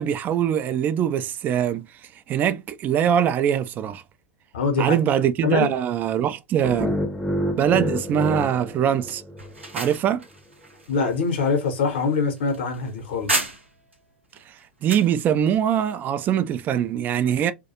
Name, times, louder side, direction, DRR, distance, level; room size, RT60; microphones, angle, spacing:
voice 1, 0.0-1.9 2.3-4.0 4.8-6.9 7.6-9.2 9.7-10.2 14.8-17.5, right 9 dB, 30° right, 0.3 m, -22 dB
voice 2, 4.5-5.0 5.4-5.7 10.9-13.5, left 4 dB, 60° left, 0.8 m, -24 dB
sound 1, 6.6-9.7, left 1 dB, 5° left, 0.6 m, -28 dB
sound 2, 9.4-13.9 14.4-15.1, right 2 dB, 85° right, 0.6 m, -32 dB
2.3 x 2.2 x 2.7 m
figure-of-eight pair, 90°, 6 cm